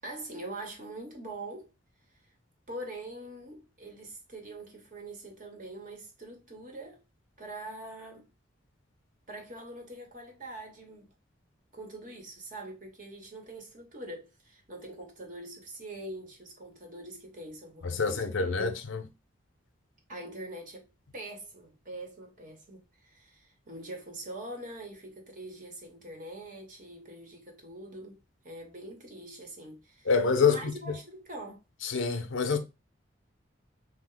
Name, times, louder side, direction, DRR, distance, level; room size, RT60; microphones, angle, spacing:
voice 1, 0.0-1.7 2.7-7.0 7.4-8.2 9.3-11.1 11.7-18.8 20.1-20.9 21.1-28.2 28.4-30.1 30.4-31.6, right 1 dB, 40° right, 0.9 m, -43 dB
voice 2, 17.8-19.0 30.1-30.7 31.8-32.6, left 5 dB, 75° left, 0.6 m, -26 dB
3.2 x 2.1 x 3.7 m
head